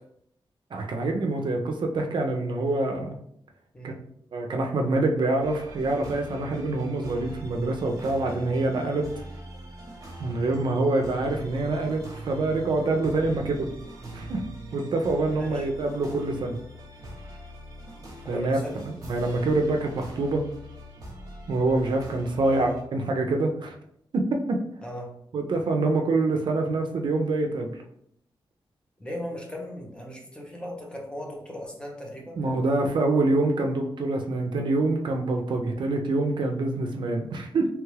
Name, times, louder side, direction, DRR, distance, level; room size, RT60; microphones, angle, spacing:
voice 1, 0.7-3.2 3.8-3.9 4.3-9.2 10.2-13.5 14.1-14.4 14.7-16.6 18.3-18.6 18.9-20.4 21.5-23.7 24.1-24.6 25.3-27.8 32.4-37.7, right 2 dB, 60° right, 3 dB, 0.4 m, -26 dB
voice 2, 3.7-4.1 15.3-15.7 18.2-18.9 22.4-22.8 24.8-25.2 29.0-32.4, equal, 10° left, 0 dB, 0.6 m, -37 dB
sound 1, 5.4-22.8, equal, 40° right, 0.8 m, -43 dB
3.0 x 2.3 x 3.2 m, 0.71 s
wide cardioid pair, 145°, 9 cm